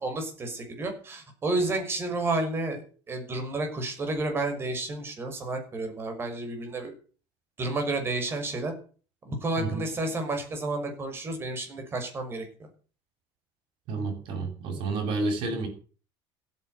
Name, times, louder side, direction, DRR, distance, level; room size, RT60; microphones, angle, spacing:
voice 1, 0.0-6.9 7.6-8.7 9.2-12.7, right 2 dB, 25° right, 5 dB, 6.1 m, -31 dB
voice 2, 13.9-15.7, right 3 dB, 60° right, 4 dB, 7.7 m, -30 dB
15.5 x 9.7 x 8.0 m, 0.40 s
cardioid pair, 150°, 10 cm